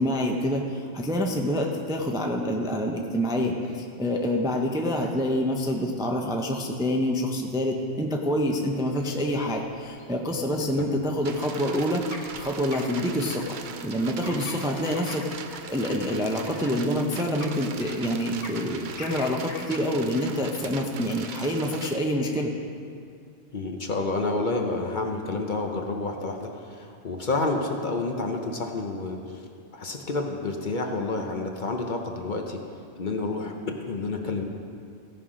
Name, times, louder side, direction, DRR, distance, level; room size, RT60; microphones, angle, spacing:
voice 1, 0.0-13.6 13.8-22.5, equal, 5° right, 1 dB, 0.5 m, -27 dB
sound 1, 8.9-19.6, left 2 dB, 65° left, 1.6 m, -45 dB
sound 2, 11.2-22.0, right 6 dB, 55° right, 0.6 m, -40 dB
voice 2, 23.5-29.4 29.7-32.6 33.0-34.4, left 3 dB, 45° left, 2 dB, 0.9 m, -29 dB
16.5 x 5.6 x 5.0 m, 2.3 s
omnidirectional pair, 1.2 m